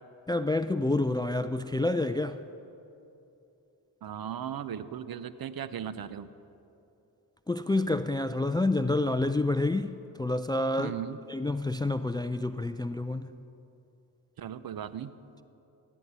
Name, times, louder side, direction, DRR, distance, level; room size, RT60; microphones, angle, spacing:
voice 1, 0.3-2.4 7.5-9.9 10.2-10.9 11.3-13.3, left 2 dB, 10° left, 0.3 m, -28 dB
voice 2, 4.0-6.3 10.8-11.2 14.4-15.1, right 9 dB, 55° right, 0.6 m, -37 dB
15.5 x 8.5 x 5.5 m
supercardioid pair, 40°, 44 cm